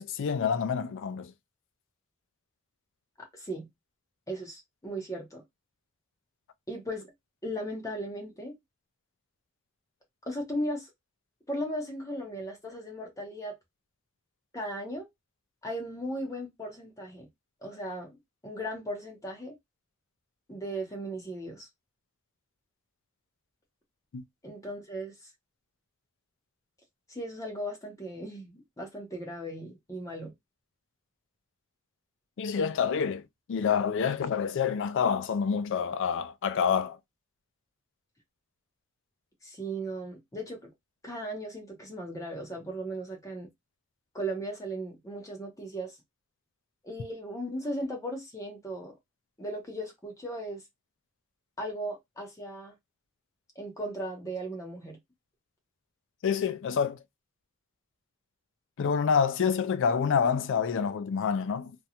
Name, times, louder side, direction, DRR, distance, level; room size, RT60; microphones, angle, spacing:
voice 1, 0.0-1.3 24.1-24.2 32.4-33.2 33.5-37.0 56.2-57.0 58.8-61.8, left 6 dB, 60° left, 0.4 m, -27 dB
voice 2, 3.3-3.7 4.3-5.4 6.7-7.1 7.4-8.6 10.3-10.9 11.5-13.6 14.5-15.1 15.6-17.3 17.6-18.2 18.4-19.6 20.5-21.7 24.4-25.3 27.1-30.3 39.4-40.6 41.0-43.5 44.1-46.0 46.8-48.9 49.4-50.6 51.6-52.7 53.6-55.0, right 1 dB, 15° left, 0.7 m, -37 dB
2.4 x 2.2 x 2.8 m
head